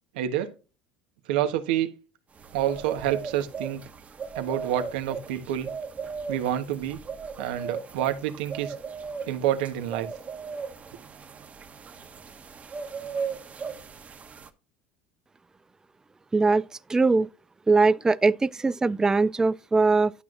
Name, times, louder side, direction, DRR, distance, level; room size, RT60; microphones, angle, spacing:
voice 1, 0.1-0.5 1.3-1.9 2.5-3.8 4.3-5.7 6.3-7.0 7.4-8.7 9.3-10.1, right 11 dB, 80° right, 1.3 m, -28 dB
sound 1, 2.4-14.5, right 5 dB, 30° right, 1.2 m, -37 dB
voice 2, 16.3-16.6 16.9-17.3 17.7-20.1, right 3 dB, 15° right, 0.3 m, -21 dB
11.5 x 6.1 x 2.6 m
supercardioid pair, 90°, 5 cm